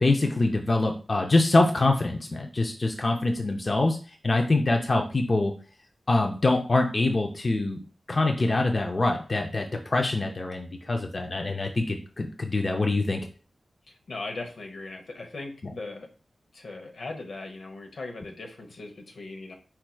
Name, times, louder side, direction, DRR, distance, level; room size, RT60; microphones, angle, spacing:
voice 1, 0.0-4.0 4.2-5.5 6.1-7.8 8.1-13.2, left 2 dB, 35° left, 2 dB, 0.5 m, -24 dB
voice 2, 13.9-16.1 16.5-19.6, left 3 dB, 75° left, 3 dB, 0.9 m, -39 dB
4.6 x 4.4 x 2.3 m, 0.35 s
wide cardioid pair, 125°, 0 cm